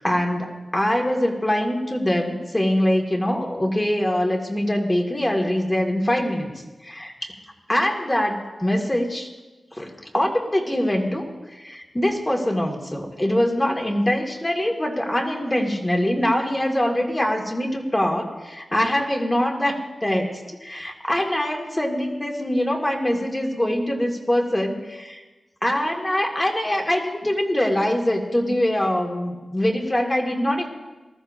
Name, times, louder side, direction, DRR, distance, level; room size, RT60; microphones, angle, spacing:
voice 1, 0.0-6.5 6.8-7.3 7.7-9.3 9.8-11.2 11.5-25.2 25.6-30.7, left 1 dB, 20° left, 1 dB, 2.2 m, -23 dB
20.0 x 13.5 x 2.7 m, 1.2 s
cardioid pair, 60°, 0 cm